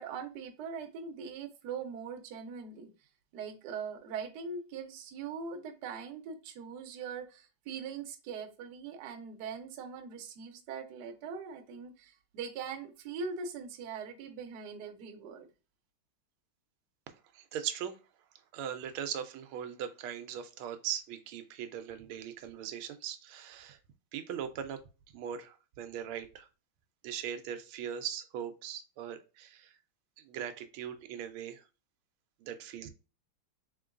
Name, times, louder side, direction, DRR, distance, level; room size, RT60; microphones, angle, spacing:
voice 1, 0.0-2.9 3.3-15.5, right 5 dB, 65° right, 1.1 m, -41 dB
voice 2, 17.3-17.9 18.5-23.8 24.1-24.8 25.1-26.5 27.0-29.8 30.2-31.6 32.4-32.9, right 9 dB, 85° right, 1.4 m, -40 dB
3.7 x 3.7 x 2.4 m
omnidirectional pair, 2.3 m